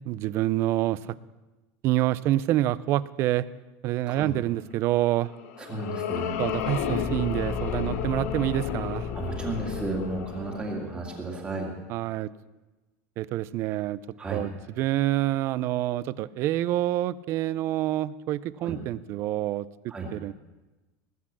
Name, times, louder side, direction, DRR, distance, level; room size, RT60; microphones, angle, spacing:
voice 1, 0.1-1.1 1.8-3.4 3.8-5.3 6.4-9.1 11.9-12.3 13.2-14.0 14.3-19.7 20.1-20.3, right 14 dB, 35° right, 19 dB, 0.4 m, -27 dB
sound 1, 5.2-11.7, left 9 dB, 85° left, 1.5 m, -34 dB
voice 2, 5.6-6.4 9.1-11.7 14.2-14.4 18.6-18.8 19.9-20.1, right 3 dB, 15° right, 1 dB, 2.2 m, -33 dB
Car / Engine, 6.2-10.7, left 6 dB, 25° left, 0.7 m, -34 dB
19.0 x 8.3 x 7.4 m, 1.1 s
supercardioid pair, 180°, 8 cm